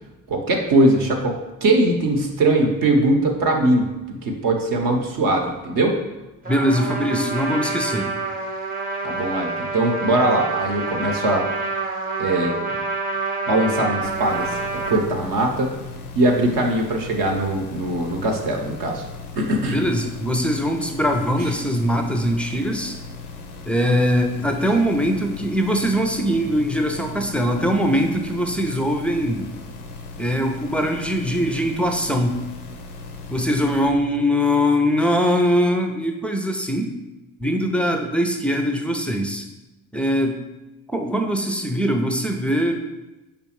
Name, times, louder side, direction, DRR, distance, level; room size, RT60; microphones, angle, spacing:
voice 1, 0.3-1.3 1.6-3.9 4.2-5.9 9.0-11.5 12.2-12.6 13.5-15.7 16.2-19.0 19.4-19.8, right 1 dB, 55° right, 1 dB, 0.8 m, -21 dB
Trumpet, 6.4-15.0, right 3 dB, 20° right, 0.8 m, -27 dB
voice 2, 6.5-8.1 19.7-23.0 23.7-29.5 30.2-32.4 33.3-36.9 37.4-39.5 39.9-40.4 40.9-42.9, equal, 5° left, 4 dB, 0.4 m, -22 dB
sound 1, 14.0-33.9, left 3 dB, 85° left, 0.5 m, -38 dB
5.1 x 3.4 x 2.9 m, 1.0 s
figure-of-eight pair, 45°, 43 cm